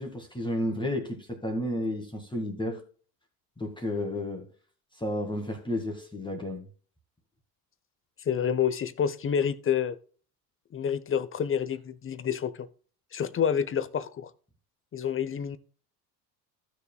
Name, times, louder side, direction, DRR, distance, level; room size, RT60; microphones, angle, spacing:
voice 1, 0.0-2.8 3.6-4.5 4.9-6.7, left 1 dB, 10° left, 2.0 m, -32 dB
voice 2, 8.3-10.0 10.7-12.7 13.1-14.3 14.9-15.6, left 8 dB, 25° left, 0.9 m, -28 dB
15.5 x 6.7 x 2.3 m
hypercardioid pair, 65°, 48 cm